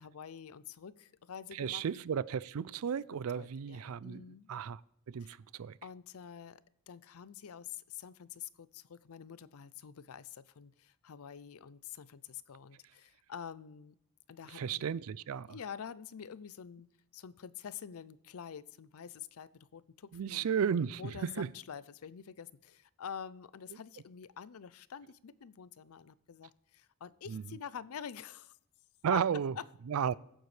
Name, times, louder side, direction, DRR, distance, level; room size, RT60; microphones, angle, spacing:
voice 1, 0.0-1.8 3.3-4.5 5.2-5.4 5.8-6.6 6.9-14.0 14.3-14.9 15.5-16.9 17.1-20.5 21.0-28.5 29.1-29.2 29.5-29.6, left 7 dB, 75° left, 0.5 m, -47 dB
voice 2, 1.5-4.2 4.5-4.8 5.1-5.8 14.5-15.5 20.1-21.5 27.3-27.4 29.0-29.5 29.9-30.1, right 7 dB, 70° right, 0.4 m, -34 dB
22.5 x 9.0 x 3.3 m
head